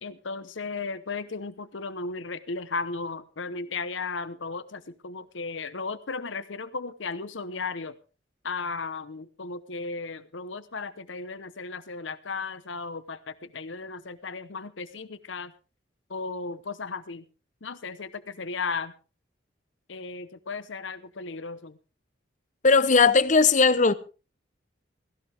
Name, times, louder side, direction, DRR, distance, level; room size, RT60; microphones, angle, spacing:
voice 1, 0.0-7.9 8.4-15.5 16.1-17.2 17.6-18.9 19.9-21.8, left 4 dB, 80° left, 1.0 m, -35 dB
voice 2, 22.6-23.9, left 4 dB, 40° left, 0.8 m, -18 dB
17.0 x 16.0 x 3.5 m
head